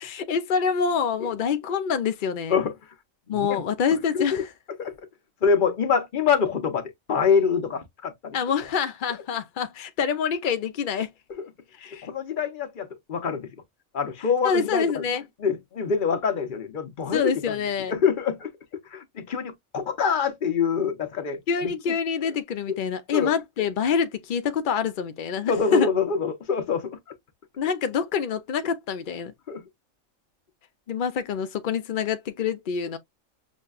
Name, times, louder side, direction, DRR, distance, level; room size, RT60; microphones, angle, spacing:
voice 1, 0.0-2.6 3.3-4.5 8.3-11.1 11.8-12.1 14.4-15.2 17.1-18.0 21.5-25.9 27.6-29.3 30.9-33.0, left 6 dB, 70° left, 0.4 m, -26 dB
voice 2, 3.3-3.6 4.1-4.4 4.8-4.9 5.4-8.4 11.4-11.5 12.0-13.5 13.9-15.0 15.4-17.5 17.9-18.5 18.9-21.7 22.7-22.8 23.1-23.3 25.5-27.0 29.5-29.6, left 6 dB, 45° left, 0.8 m, -25 dB
6.2 x 2.1 x 2.4 m
omnidirectional pair, 1.4 m